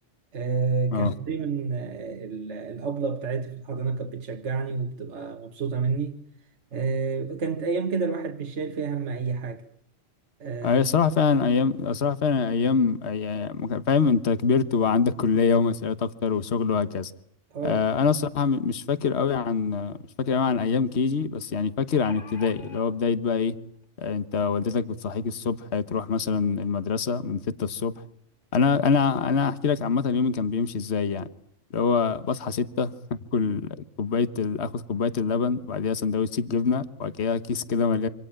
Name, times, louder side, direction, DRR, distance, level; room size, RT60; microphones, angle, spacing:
voice 1, 0.3-6.2 6.7-9.6 10.4-10.8 17.5-17.8, right 5 dB, 70° right, 1.7 m, -29 dB
voice 2, 10.6-17.1 17.6-23.6 24.0-27.9 28.5-31.3 31.7-32.9 33.3-33.6 34.0-38.1, left 5 dB, 60° left, 1.5 m, -24 dB
sound 1, 21.9-22.8 23.8-23.9 24.3-24.4, left 5 dB, 35° left, 2.1 m, -45 dB
26.0 x 18.0 x 8.8 m
omnidirectional pair, 1.3 m